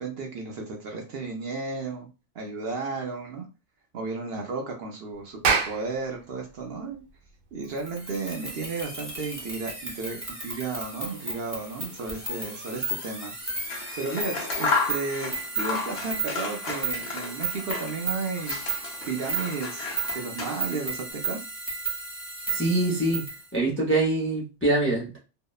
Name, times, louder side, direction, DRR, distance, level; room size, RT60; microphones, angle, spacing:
voice 1, 0.0-2.1 2.3-3.4 3.9-7.0 7.5-13.3 13.9-18.6 19.1-19.9 20.1-21.4, right 4 dB, 60° right, 1 dB, 0.7 m, -33 dB
Clapping, 5.2-10.1, right 5 dB, 85° right, 1.0 m, -31 dB
sound 1, 7.8-23.4, right 3 dB, 15° right, 0.9 m, -34 dB
Scissors, 13.5-18.1 18.3-20.9, left 4 dB, 60° left, 0.9 m, -33 dB
voice 2, 22.5-23.2 23.5-25.2, right 2 dB, 20° left, -3 dB, 0.4 m, -24 dB
2.7 x 2.0 x 2.3 m, 0.31 s
omnidirectional pair, 1.3 m